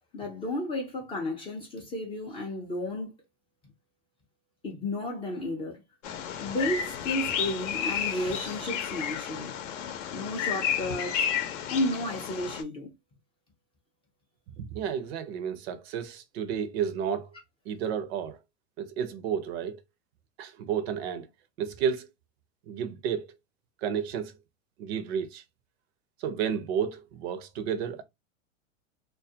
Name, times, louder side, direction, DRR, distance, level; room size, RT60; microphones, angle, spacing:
voice 1, 0.1-3.1 4.6-5.8 6.4-9.5 10.1-11.3 11.7-12.9, left 1 dB, 15° left, 0.3 m, -32 dB
Bird vocalization bird call bird song, 6.0-12.6, left 8 dB, 70° left, 0.6 m, -32 dB
voice 2, 14.6-17.3 17.7-18.4 18.8-19.8 20.4-21.3 21.6-22.1 22.7-23.3 23.8-24.3 24.8-25.4 26.2-28.0, right 8 dB, 55° right, 0.5 m, -31 dB
2.2 x 2.1 x 2.6 m
hypercardioid pair, 115°, 39 cm